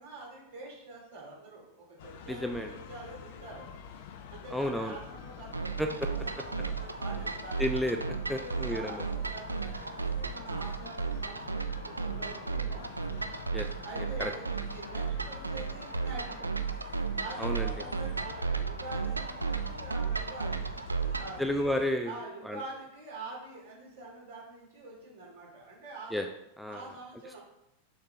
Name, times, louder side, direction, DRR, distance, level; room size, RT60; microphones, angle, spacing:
voice 1, 0.0-7.7 8.3-13.3 13.8-16.7 17.2-20.6 20.9-21.5 22.0-26.3 26.7-27.4, right 3 dB, 55° right, -3 dB, 2.6 m, -46 dB
sound 1, 2.0-21.9, left 7 dB, 50° left, 0.6 m, -47 dB
voice 2, 2.3-2.7 4.5-5.0 5.8-5.9 7.6-9.0 13.5-13.7 14.2-14.3 17.4-17.7 21.4-22.2 22.5-22.6 26.1-26.3 26.6-26.8, left 1 dB, ahead, 5 dB, 0.4 m, -31 dB
sound 2, 5.5-21.4, right 5 dB, 80° right, 0.4 m, -34 dB
6.6 x 5.8 x 3.2 m, 0.84 s
figure-of-eight pair, 90°, 0 cm